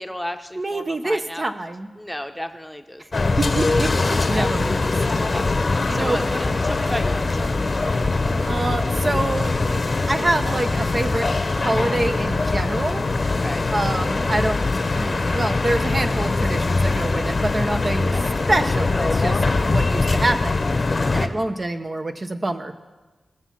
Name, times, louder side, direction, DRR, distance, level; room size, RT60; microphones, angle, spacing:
voice 1, 0.0-1.5 2.0-3.4 3.6-7.3 13.3-13.7 18.1-18.2 21.0-21.3, equal, 5° left, 6 dB, 0.9 m, -34 dB
voice 2, 0.6-1.9 3.4-4.8 5.9-6.2 8.5-9.5 10.1-11.3 11.6-13.0 13.7-14.6 14.9-18.1 18.5-19.4 19.7-22.7, right 2 dB, 35° right, 6 dB, 0.8 m, -26 dB
sound 1, 3.1-21.3, left 3 dB, 45° left, 0.9 m, -22 dB
sound 2, 4.2-11.8, right 1 dB, 75° right, 3.1 m, -43 dB
19.5 x 7.1 x 5.8 m, 1.2 s
cardioid pair, 65°, 0 cm